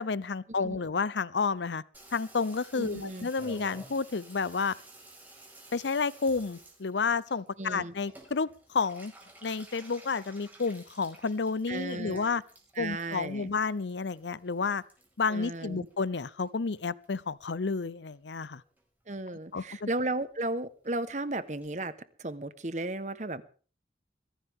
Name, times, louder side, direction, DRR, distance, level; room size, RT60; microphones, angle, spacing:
voice 1, 0.0-1.8 2.1-4.7 5.7-9.1 9.4-12.4 12.8-14.8 15.2-18.6 19.3-19.9, left 4 dB, 85° left, 0.7 m, -31 dB
Water tap faucet / Bathtub (filling or washing), 1.9-16.5 16.8-17.5 17.8-17.9 18.1-18.2 18.4-18.8 19.1-19.2 19.4-19.5 19.8-19.9 20.1-20.2 20.5-20.6 20.8-20.9 21.2-21.3 21.6-21.7, right 1 dB, 10° right, 5.4 m, -53 dB
voice 2, 2.8-3.3 7.6-7.9 11.7-12.3 12.8-13.5 15.3-15.9 19.1-21.9 22.2-23.4, right 2 dB, 40° right, 1.2 m, -35 dB
22.0 x 15.5 x 3.7 m
head